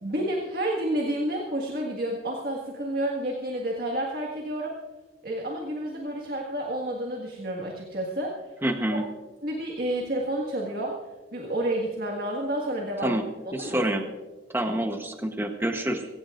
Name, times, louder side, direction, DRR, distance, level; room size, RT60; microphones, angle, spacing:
voice 1, 0.0-4.7 5.2-8.3 9.4-11.0 11.3-13.2 13.4-13.8, right 1 dB, 50° right, 0 dB, 1.8 m, -30 dB
voice 2, 8.6-9.0 13.0-13.2 13.5-14.1 14.5-16.1, right 1 dB, 10° right, 5 dB, 0.9 m, -27 dB
23.0 x 17.0 x 2.5 m, 1.3 s
head